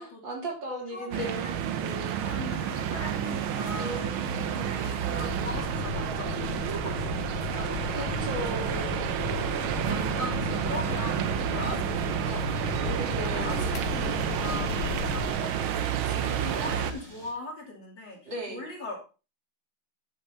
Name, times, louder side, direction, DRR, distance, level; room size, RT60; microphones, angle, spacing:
voice 1, 0.0-2.3 3.7-4.6 7.9-9.1 12.8-13.8 16.0-16.8 18.3-18.6, right 1 dB, 65° right, -1 dB, 3.9 m, -37 dB
voice 2, 0.9-1.6 2.2-7.2 7.5-9.1 9.9-13.1 13.3-19.0, left 2 dB, 65° left, -2 dB, 3.7 m, -40 dB
sound 1, 1.1-16.9, right 9 dB, 85° right, 1.7 m, -30 dB
sound 2, 2.9-17.3, right 1 dB, 50° right, 4.1 m, -52 dB
sound 3, 5.2-15.3, left 11 dB, 80° left, 1.4 m, -36 dB
10.5 x 9.6 x 2.8 m, 0.32 s
omnidirectional pair, 2.2 m